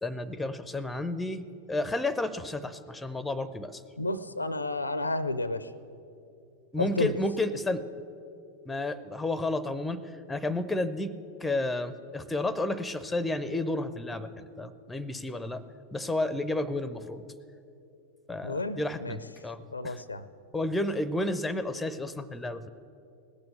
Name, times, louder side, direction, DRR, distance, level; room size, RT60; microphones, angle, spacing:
voice 1, 0.0-3.8 6.7-7.8 8.7-15.6 15.9-17.2 18.3-20.0 20.5-22.7, left 2 dB, 5° left, 15 dB, 0.6 m, -31 dB
voice 2, 4.0-5.7 6.8-7.1 18.4-19.2 19.7-20.3, left 2 dB, 80° left, 16 dB, 0.5 m, -31 dB
18.0 x 7.0 x 8.2 m, 2.7 s
figure-of-eight pair, 90°, 0 cm